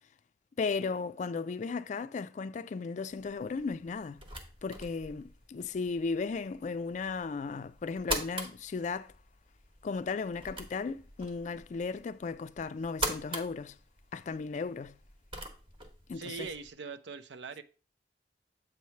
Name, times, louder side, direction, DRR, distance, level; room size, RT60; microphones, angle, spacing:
voice 1, 0.6-4.2 4.6-9.1 9.8-13.8 14.1-15.0 16.1-16.5, left 4 dB, 40° left, 0.3 m, -35 dB
sound 1, 3.1-16.7, right 1 dB, 30° right, 1.1 m, -43 dB
voice 2, 16.1-17.6, right 5 dB, 85° right, 0.6 m, -41 dB
7.8 x 3.1 x 5.7 m
head